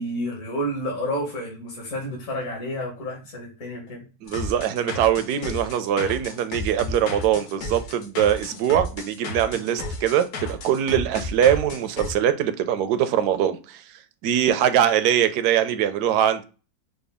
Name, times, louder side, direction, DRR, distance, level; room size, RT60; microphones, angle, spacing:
voice 1, 0.0-4.1, equal, 55° left, 1.7 m, -30 dB
voice 2, 4.2-13.8 14.2-16.4, right 10 dB, 75° right, 1.1 m, -22 dB
sound 1, 4.3-12.1, left 2 dB, 75° left, 1.3 m, -33 dB
4.8 x 2.2 x 3.4 m
omnidirectional pair, 1.7 m